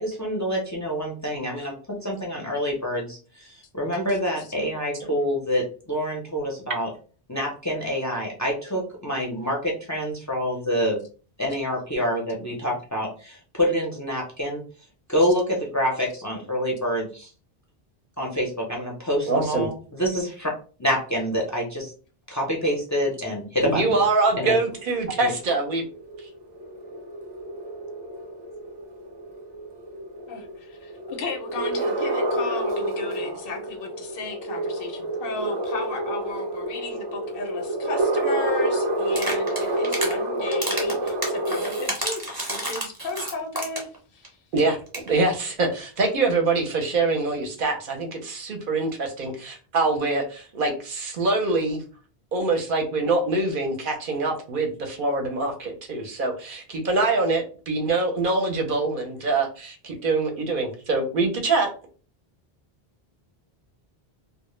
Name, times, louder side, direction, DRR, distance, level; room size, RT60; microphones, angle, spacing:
voice 1, 0.0-1.7 2.0-6.9 7.3-11.0 11.4-14.6 15.1-17.3 18.2-20.5 20.8-21.9 22.3-24.0 24.4-24.5 25.2-25.3, equal, 25° left, -2 dB, 0.4 m, -26 dB
voice 2, 19.3-19.7 23.6-25.8 44.5-44.8 45.0-51.8 52.3-61.7, right 3 dB, 60° right, 3 dB, 0.7 m, -24 dB
sound 1, 24.5-41.9, right 1 dB, 45° right, 0.3 m, -29 dB
voice 3, 30.3-42.2 42.5-44.4, left 4 dB, 70° left, 4 dB, 0.7 m, -35 dB
sound 2, 39.1-40.1 40.5-44.0 44.2-44.3 44.6-44.7 44.9-45.1, right 1 dB, 25° right, 0.7 m, -30 dB
2.1 x 2.0 x 3.0 m, 0.38 s
omnidirectional pair, 1.0 m